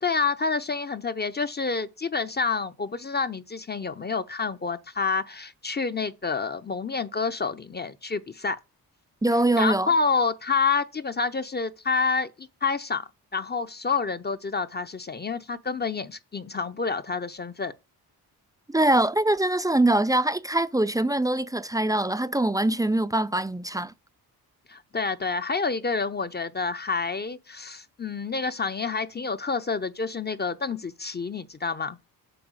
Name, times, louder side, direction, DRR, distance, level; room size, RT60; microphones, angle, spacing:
voice 1, 0.0-8.6 9.6-17.7 24.7-32.0, left 4 dB, 25° left, 0.7 m, -28 dB
voice 2, 9.2-9.9 18.7-23.9, right 1 dB, 10° right, 0.4 m, -23 dB
7.8 x 4.4 x 6.4 m
cardioid pair, 85°, 39 cm